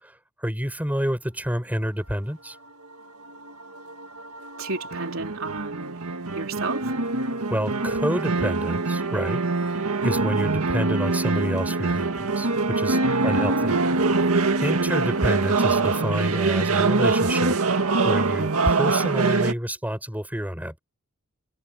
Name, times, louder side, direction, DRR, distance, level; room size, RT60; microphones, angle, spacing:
voice 1, 0.0-2.6 7.5-13.8 14.6-20.8, equal, 10° right, 4.5 m, -29 dB
sound 1, 3.3-19.5, right 3 dB, 85° right, 1.9 m, -24 dB
voice 2, 4.6-6.0 6.3-6.9 12.9-13.4, right 3 dB, 65° right, 3.9 m, -33 dB
head